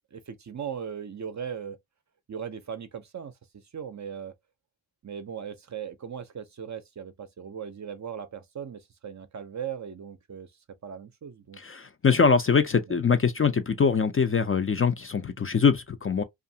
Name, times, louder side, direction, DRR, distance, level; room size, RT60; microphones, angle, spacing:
voice 1, 0.1-1.8 2.3-4.4 5.0-10.5 10.8-11.6 12.9-13.0, right 7 dB, 40° right, 0.5 m, -38 dB
voice 2, 11.6-16.2, left 5 dB, 30° left, 0.4 m, -23 dB
2.6 x 2.4 x 2.6 m
cardioid pair, 65°, 46 cm